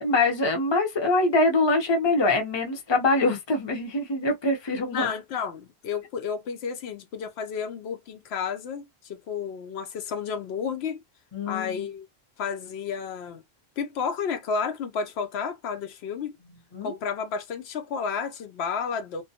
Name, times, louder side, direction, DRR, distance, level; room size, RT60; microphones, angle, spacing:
voice 1, 0.0-5.1 11.3-11.8 16.7-16.9, left 2 dB, 30° left, 0.7 m, -24 dB
voice 2, 4.9-11.0 11.5-12.1 12.4-13.4 13.8-16.4 16.8-19.2, left 6 dB, 80° left, 0.8 m, -31 dB
2.2 x 2.2 x 2.7 m
omnidirectional pair, 1.1 m